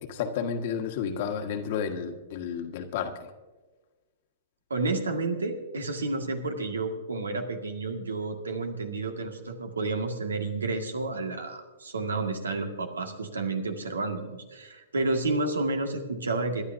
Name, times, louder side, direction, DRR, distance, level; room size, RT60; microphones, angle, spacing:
voice 1, 0.0-3.1, left 7 dB, 50° left, 5 dB, 1.6 m, -31 dB
voice 2, 4.7-16.6, right 3 dB, 85° right, 4 dB, 1.9 m, -30 dB
27.0 x 11.0 x 2.7 m, 1.3 s
hypercardioid pair, 115°, 0 cm